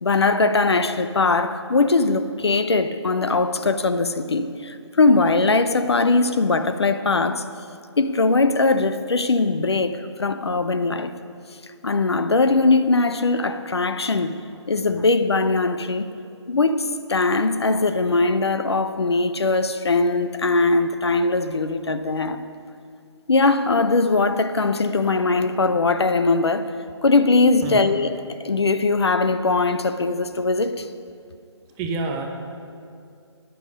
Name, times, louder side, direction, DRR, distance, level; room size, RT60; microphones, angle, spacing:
voice 1, 0.0-7.5 8.0-11.1 11.8-14.3 14.7-16.1 16.5-22.4 23.3-26.7 27.0-30.9, left 3 dB, 60° left, 0.7 m, -20 dB
voice 2, 31.8-32.3, right 3 dB, 10° right, 0.5 m, -27 dB
14.0 x 10.5 x 5.2 m
figure-of-eight pair, 145°, 15 cm